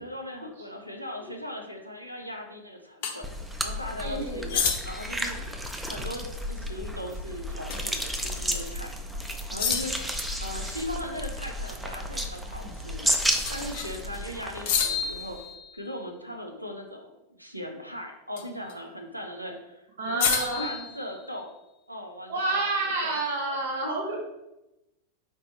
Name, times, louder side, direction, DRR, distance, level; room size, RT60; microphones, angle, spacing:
voice 1, 0.0-3.3 3.6-5.4 5.8-8.9 9.5-9.9 10.4-15.4 15.7-17.1 17.4-21.5 21.9-23.9, left 1 dB, 90° right, 3 dB, 0.6 m, -39 dB
sound 1, 3.0-3.2 4.5-5.2 7.7-8.0 8.3-8.4 9.6-10.2 13.5-14.0 14.7-16.0 18.4-18.7 20.2-21.6, left 7 dB, 50° left, 0.6 m, -30 dB
sound 2, 3.2-15.4, equal, 5° right, 0.4 m, -33 dB
voice 2, 4.0-4.5 20.0-20.7 22.3-24.2, right 2 dB, 60° right, -1 dB, 1.0 m, -29 dB
4.5 x 3.3 x 2.9 m, 0.92 s
figure-of-eight pair, 90°, 0 cm